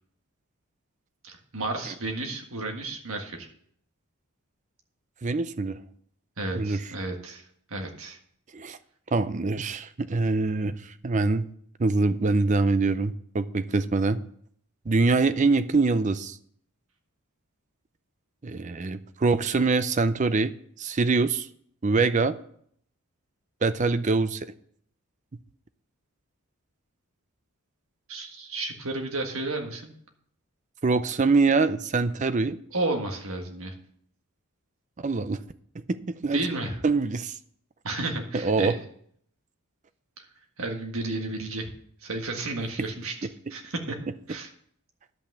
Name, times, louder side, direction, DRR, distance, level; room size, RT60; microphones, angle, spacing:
voice 1, 1.2-3.5 6.4-8.2 28.1-29.9 32.7-33.7 36.3-36.8 37.8-38.7 40.2-40.3 40.6-41.7 42.0-43.1 43.5-44.0 44.3-44.5, right 2 dB, 70° right, 3 dB, 1.7 m, -32 dB
voice 2, 5.2-5.8 6.5-6.8 8.5-8.8 9.1-11.5 11.8-14.2 14.9-16.4 18.4-20.5 20.8-21.5 21.8-22.4 23.6-24.5 30.8-32.6 35.0-35.4 35.9-36.4 36.8-37.4 38.3-38.8, right 3 dB, 35° right, 13 dB, 0.5 m, -24 dB
10.5 x 5.8 x 6.6 m, 0.65 s
head